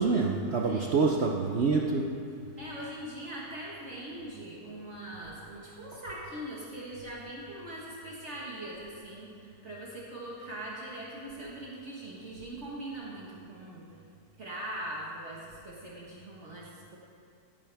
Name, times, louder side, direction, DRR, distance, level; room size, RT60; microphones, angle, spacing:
voice 1, 0.0-2.2, right 4 dB, 65° right, 1 dB, 0.6 m, -26 dB
voice 2, 0.6-1.0 2.3-13.8 14.4-17.0, right 1 dB, 45° right, -5 dB, 1.7 m, -41 dB
17.0 x 9.1 x 3.4 m, 2.3 s
omnidirectional pair, 1.9 m